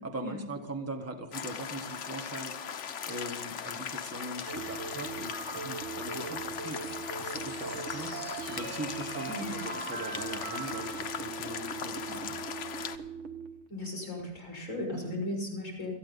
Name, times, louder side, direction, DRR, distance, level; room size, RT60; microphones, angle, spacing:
voice 1, 0.0-12.5 14.9-15.2, right 1 dB, 10° right, 4 dB, 1.0 m, -41 dB
sound 1, 1.3-13.0, left 8 dB, 65° left, 0.7 m, -39 dB
sound 2, 4.5-13.8, right 6 dB, 50° right, 1.0 m, -40 dB
voice 2, 13.7-15.9, left 1 dB, 35° left, -3 dB, 5.4 m, -36 dB
17.5 x 13.5 x 4.0 m, 1.0 s
omnidirectional pair, 2.2 m